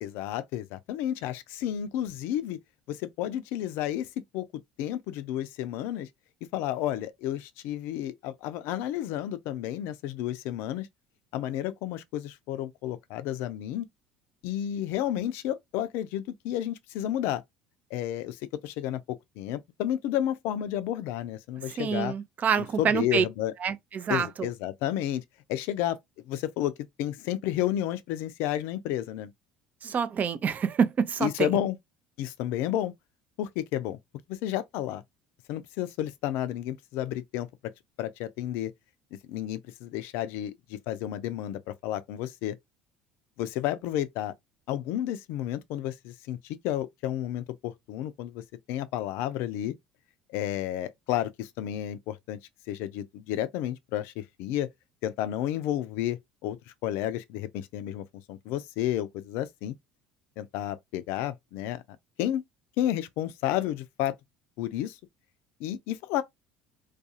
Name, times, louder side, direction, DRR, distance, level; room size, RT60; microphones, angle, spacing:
voice 1, 0.0-2.6 2.9-4.5 4.8-6.1 6.5-10.9 11.3-13.9 14.4-17.4 17.9-22.1 22.6-23.5 24.1-25.2 25.5-26.0 26.2-29.3 31.2-31.8 32.2-32.9 33.4-34.0 34.3-35.0 35.5-37.5 38.0-38.7 39.3-42.6 43.4-44.3 44.7-48.4 48.7-49.7 50.3-52.4 52.7-54.7 55.0-56.6 56.8-59.7 60.4-61.8 62.2-62.4 62.8-64.1 64.6-65.0 65.6-66.2, left 12 dB, 65° left, 0.4 m, -31 dB
voice 2, 21.8-23.2 23.6-24.5 29.8-31.5, right 7 dB, 40° right, 0.4 m, -27 dB
2.4 x 2.3 x 2.7 m
hypercardioid pair, 65°, 4 cm